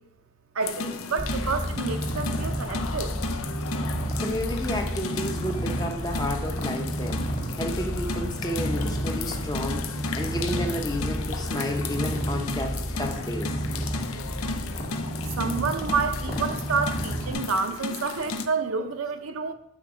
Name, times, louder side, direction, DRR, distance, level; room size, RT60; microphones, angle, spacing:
voice 1, 0.5-3.1 15.4-19.5, right 4 dB, 75° right, 8 dB, 0.6 m, -29 dB
sound 1, 0.6-18.5, left 4 dB, 75° left, 0.6 m, -34 dB
Purr, 1.2-17.3, equal, 30° left, 1.4 m, -31 dB
voice 2, 4.2-13.5, left 1 dB, 15° left, 4 dB, 0.7 m, -31 dB
6.7 x 5.1 x 4.9 m, 0.83 s
head